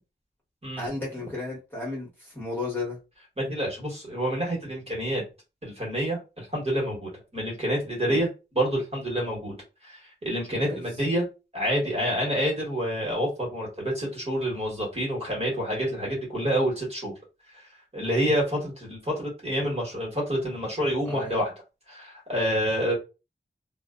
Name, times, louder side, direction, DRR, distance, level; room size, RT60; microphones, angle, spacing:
voice 1, 0.8-3.0 8.0-8.2 10.6-10.8 21.0-21.4, left 2 dB, 10° left, -5 dB, 1.2 m, -34 dB
voice 2, 3.4-5.2 5.6-8.3 8.5-9.6 9.8-11.3 11.5-17.1 17.5-17.7 17.9-21.5 21.9-22.9, equal, 35° right, -3 dB, 1.3 m, -28 dB
2.4 x 2.1 x 2.4 m, 0.29 s
wide cardioid pair, 100°, 19 cm